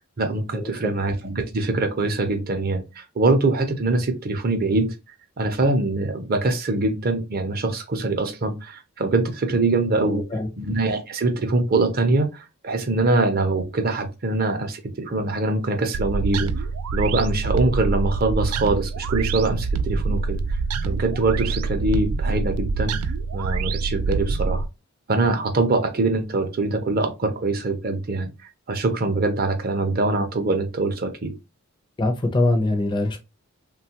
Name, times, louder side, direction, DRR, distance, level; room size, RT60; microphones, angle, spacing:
voice 1, 0.2-5.0 5.4-10.2 10.6-16.7 16.9-20.4 20.8-24.6 25.1-28.3 28.7-31.3, right 2 dB, 45° right, 0.6 m, -23 dB
voice 2, 10.0-10.5 32.0-33.2, left 2 dB, 20° left, 0.5 m, -23 dB
sound 1, 15.9-24.7, right 4 dB, 80° right, 0.3 m, -25 dB
3.1 x 2.3 x 2.7 m
head